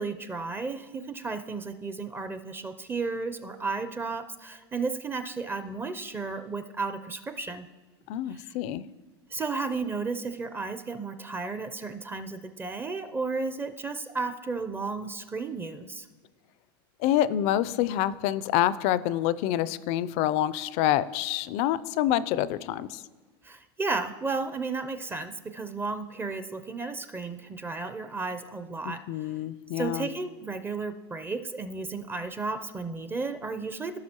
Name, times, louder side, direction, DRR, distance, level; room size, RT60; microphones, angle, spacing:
voice 1, 0.0-7.7 8.3-8.5 9.3-16.1 23.4-29.3 29.8-34.0, right 4 dB, 15° right, 9 dB, 0.5 m, -33 dB
voice 2, 8.1-8.8 17.0-23.0 28.9-30.1, left 12 dB, 55° left, 17 dB, 0.4 m, -27 dB
16.0 x 6.0 x 2.9 m, 1.3 s
supercardioid pair, 115°, 13 cm